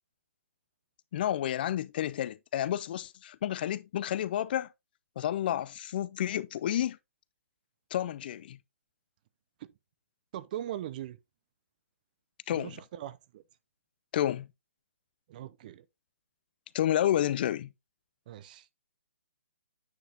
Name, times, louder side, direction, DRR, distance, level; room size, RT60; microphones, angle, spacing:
voice 1, 1.1-4.7 5.2-7.0 7.9-8.6 12.5-12.7 14.1-14.5 16.7-17.7, left 11 dB, 45° left, 0.5 m, -30 dB
voice 2, 10.3-11.2 12.5-13.4 15.3-15.8 18.3-18.7, right 12 dB, 40° right, 0.6 m, -40 dB
9.3 x 4.9 x 2.7 m
hypercardioid pair, 150°, 7 cm